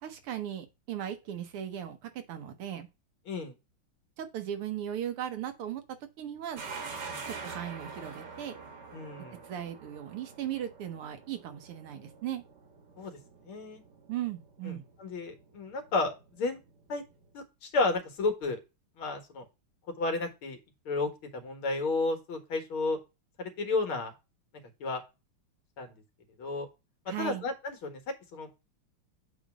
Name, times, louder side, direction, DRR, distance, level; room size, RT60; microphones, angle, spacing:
voice 1, 0.0-2.9 4.2-6.6 7.3-8.5 9.4-12.4 14.1-14.8 27.1-27.5, right 10 dB, 85° right, 2.0 m, -37 dB
sound 1, 6.6-17.3, right 4 dB, 55° right, 1.7 m, -46 dB
voice 2, 8.9-9.4 13.0-13.2 13.5-13.8 14.7-16.6 16.9-17.0 17.3-18.6 19.0-19.5 20.0-20.6 20.9-23.0 23.4-24.1 24.8-25.0 25.8-25.9 26.4-26.7 27.2-28.0 28.3-28.6, left 3 dB, 70° left, 2.3 m, -32 dB
8.0 x 3.2 x 6.1 m
omnidirectional pair, 2.4 m